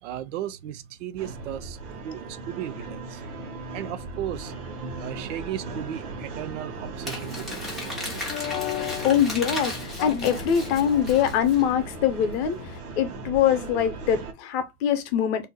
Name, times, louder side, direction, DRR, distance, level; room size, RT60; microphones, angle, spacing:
voice 1, 0.0-1.8 2.0-3.2 3.7-4.5 5.0-7.7, right 11 dB, 55° right, 0.5 m, -35 dB
Horror theme, 1.2-14.3, right 3 dB, 80° right, 1.1 m, -38 dB
Crumpling crinkling, 7.0-11.6, left 2 dB, ahead, 0.3 m, -36 dB
sound 1, 7.1-12.8, left 12 dB, 85° left, 0.7 m, -37 dB
voice 2, 9.0-12.6 13.0-15.5, left 9 dB, 45° left, 0.7 m, -23 dB
2.7 x 2.0 x 3.9 m
hypercardioid pair, 130°, 44 cm